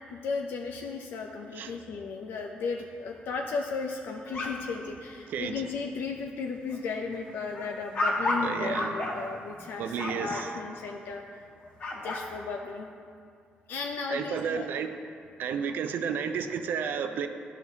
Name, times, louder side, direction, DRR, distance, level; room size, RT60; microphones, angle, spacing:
voice 1, 0.1-11.5 12.0-12.9 13.7-14.7, left 4 dB, 75° left, 2 dB, 0.4 m, -35 dB
sound 1, 4.1-4.9 5.3-5.6 6.0-6.3 6.7-10.4 11.6-12.2, left 1 dB, 40° left, 1.3 m, -32 dB
voice 2, 8.4-8.9 9.8-10.5 14.1-14.9 15.4-17.3, right 7 dB, 65° right, 8 dB, 0.4 m, -32 dB
13.0 x 4.9 x 2.7 m, 2.3 s
cardioid pair, 155°, 4 cm